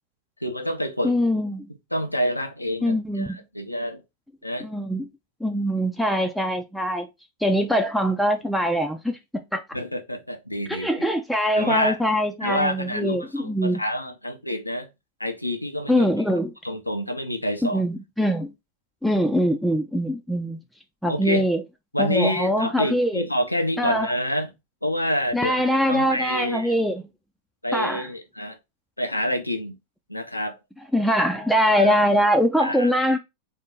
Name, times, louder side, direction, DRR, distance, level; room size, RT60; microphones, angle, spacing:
voice 1, 0.4-1.1 1.9-4.0 4.4-4.7 9.7-10.9 11.6-12.0 12.4-14.9 15.2-16.1 16.6-17.8 21.1-21.4 21.9-24.5 24.8-26.7 27.6-28.6 29.0-29.7 30.1-30.6 31.8-31.9 32.6-32.9, equal, 85° left, 0.6 m, -27 dB
voice 2, 1.0-1.7 2.8-3.4 4.6-5.1 5.4-7.1 7.4-9.6 10.7-13.8 15.9-16.5 17.7-18.5 19.0-20.6 21.0-21.6 22.0-23.2 23.8-24.1 25.3-27.1 27.7-28.1 30.9-33.2, equal, ahead, 0.4 m, -23 dB
3.6 x 2.7 x 3.6 m
figure-of-eight pair, 90°, 0 cm